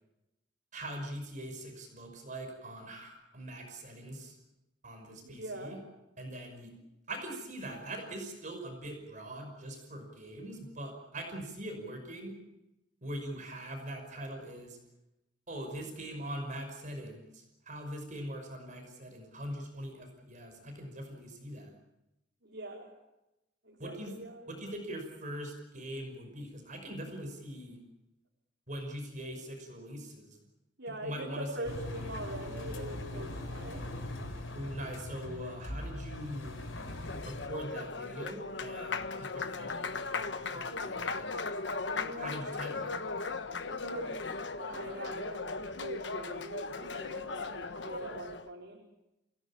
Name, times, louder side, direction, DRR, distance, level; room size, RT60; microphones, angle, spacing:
voice 1, 0.7-4.4 4.8-5.8 6.2-6.7 7.1-12.3 13.0-14.8 15.5-21.8 23.8-24.2 24.5-27.8 28.7-30.4 31.0-31.5 34.5-36.7 37.3-41.3 42.2-42.9, right 1 dB, 40° right, 4 dB, 5.7 m, -42 dB
voice 2, 5.2-5.8 22.4-22.9 23.6-24.6 30.8-33.9 41.8-42.3 43.6-44.2 44.5-48.8, right 1 dB, 65° right, -1 dB, 4.3 m, -42 dB
Engine, 31.6-37.5, left 1 dB, 90° left, 4.4 m, -41 dB
Applause, 36.7-48.5, left 4 dB, 65° left, 1.3 m, -38 dB
27.5 x 17.5 x 8.7 m, 0.93 s
head